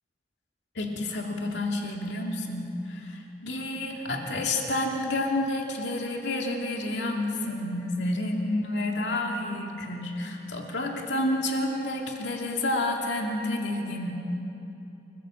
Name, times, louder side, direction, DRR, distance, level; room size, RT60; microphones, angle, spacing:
voice 1, 0.8-14.1, left 1 dB, 80° left, 1 dB, 2.4 m, -29 dB
30.0 x 15.5 x 7.7 m, 2.9 s
head